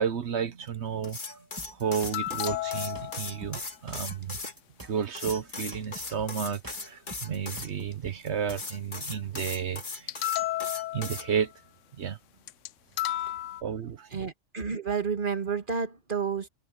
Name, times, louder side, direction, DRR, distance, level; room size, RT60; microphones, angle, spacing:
voice 1, 0.0-1.4 1.7-4.4 4.8-10.2 10.9-11.5 11.9-12.2 13.6-14.2, right 7 dB, 65° right, 1.2 m, -32 dB
sound 1, 1.0-4.5 5.1-7.7 8.5-11.3, left 3 dB, 40° left, 1.9 m, -38 dB
sound 2, 1.6-8.8, right 2 dB, 15° right, 1.5 m, -47 dB
sound 3, 2.1-3.5 10.1-11.4 12.5-12.7 13.0-13.6, left 14 dB, 90° left, 0.9 m, -32 dB
voice 2, 14.1-16.5, right 5 dB, 45° right, 2.0 m, -31 dB
omnidirectional pair, 1.2 m